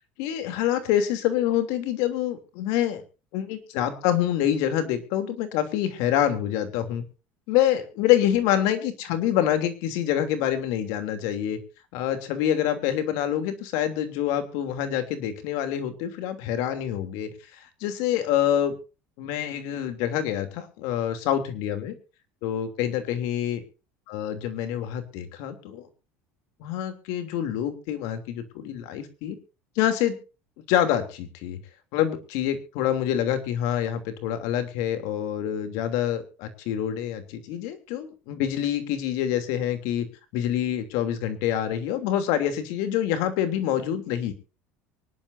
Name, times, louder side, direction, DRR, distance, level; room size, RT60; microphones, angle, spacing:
voice 1, 0.2-3.0 3.3-7.0 7.5-11.6 11.9-18.7 19.2-22.0 22.4-23.6 24.1-25.9 26.6-29.4 29.8-30.2 30.7-31.6 31.9-40.1 40.3-44.3, left 11 dB, 70° left, 8 dB, 3.0 m, -26 dB
24.5 x 11.5 x 2.7 m, 0.32 s
supercardioid pair, 110°, 6 cm